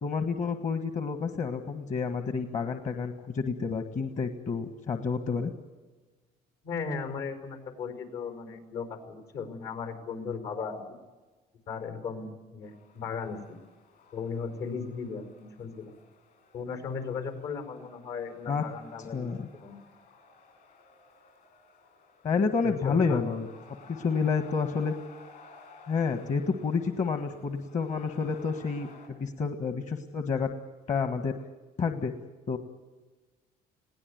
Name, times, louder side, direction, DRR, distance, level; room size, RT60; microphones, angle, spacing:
voice 1, 0.0-5.5 18.5-18.6 19.1-19.5 22.2-24.9 25.9-30.5 30.9-31.3 31.8-32.1 32.5-32.6, left 5 dB, 45° left, 7 dB, 1.6 m, -29 dB
voice 2, 6.6-10.9 11.7-13.6 14.1-15.9 16.5-19.8 22.6-23.2, left 5 dB, 80° left, 7 dB, 5.2 m, -36 dB
sound 1, 12.6-29.1, left 4 dB, 60° left, 7.3 m, -56 dB
21.0 x 17.5 x 9.5 m, 1.3 s
cardioid pair, 110°, 17 cm